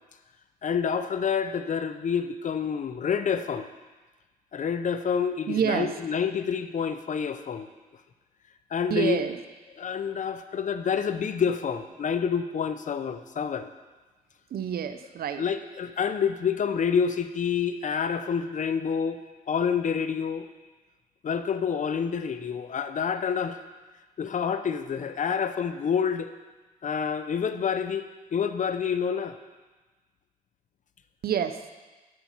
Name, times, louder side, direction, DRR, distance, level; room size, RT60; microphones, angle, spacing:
voice 1, 0.6-3.7 4.5-7.7 8.7-9.2 9.8-13.7 15.4-19.2 19.5-20.5 21.2-23.6 24.2-26.3 26.8-29.4, left 7 dB, 55° left, 10 dB, 0.6 m, -28 dB
voice 2, 5.5-5.9 8.9-9.4 14.5-15.4 31.2-31.7, right 8 dB, 75° right, 9 dB, 0.6 m, -28 dB
7.9 x 6.0 x 5.5 m, 1.2 s
cardioid pair, 80°, 16 cm